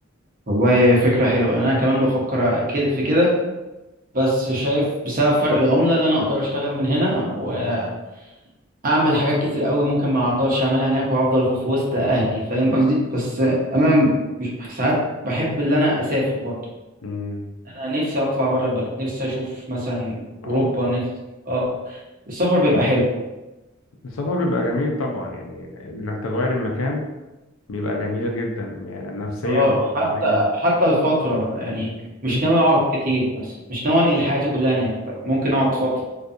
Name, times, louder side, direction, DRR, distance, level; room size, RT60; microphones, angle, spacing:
voice 1, 0.5-3.3 4.1-7.9 8.8-14.1 14.4-15.0 15.2-16.6 17.7-21.0 21.5-22.0 22.3-23.1 29.4-31.9 32.2-36.0, equal, 45° right, -4 dB, 0.7 m, -20 dB
voice 2, 17.0-17.5 20.4-20.7 24.0-27.0 27.7-29.7 30.0-30.4 32.2-32.4, left 2 dB, 90° left, 1 dB, 0.5 m, -26 dB
2.4 x 2.3 x 2.6 m, 1.0 s
head